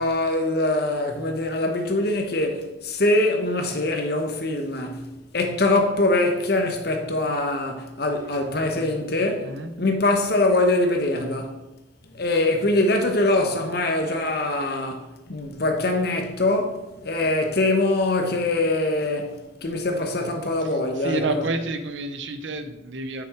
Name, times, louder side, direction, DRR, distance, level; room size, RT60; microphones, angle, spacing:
voice 1, 0.0-5.1 5.3-11.6 12.1-21.5, left 2 dB, 50° left, 1.0 m, -23 dB
voice 2, 21.0-23.3, right 2 dB, 70° right, 0.7 m, -29 dB
6.1 x 6.0 x 4.8 m
head